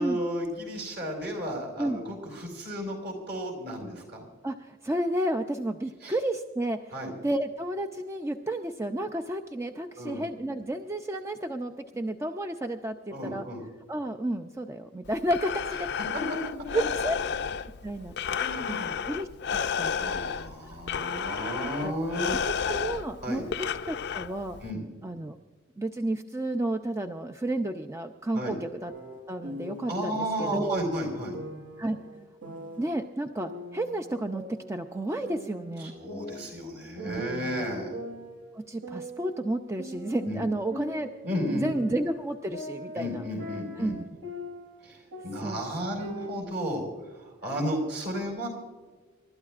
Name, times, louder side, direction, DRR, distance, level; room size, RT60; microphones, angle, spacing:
voice 1, 0.0-4.2 6.0-6.1 6.9-7.1 10.0-10.2 13.1-13.6 18.3-18.9 20.0-22.4 23.2-23.4 24.6-24.8 28.3-28.6 29.9-31.4 35.8-38.0 40.2-40.4 41.2-41.7 42.9-43.9 44.8-46.8 47.1-48.5, equal, 55° right, 1 dB, 4.9 m, -33 dB
voice 2, 4.4-6.9 7.2-13.4 13.9-15.8 16.7-17.2 17.8-18.1 18.7-19.9 21.6-21.9 22.4-23.4 23.8-24.6 25.0-25.4 25.8-28.9 29.3-30.8 31.8-32.0 32.8-35.9 37.1-37.6 38.5-41.1 41.4-43.3 43.8-44.1 45.4-46.1, right 1 dB, 15° right, 6 dB, 0.4 m, -31 dB
Breathing, 15.1-24.7, left 7 dB, 55° left, 0.5 m, -32 dB
sound 1, 28.9-29.9 30.4-30.9 31.3-33.0 33.4-35.0 35.2-36.7 37.0-37.5 37.9-40.3 40.7-44.8 45.1-46.4, right 1 dB, 80° right, 5.7 m, -41 dB
28.0 x 12.5 x 2.5 m, 1.3 s
head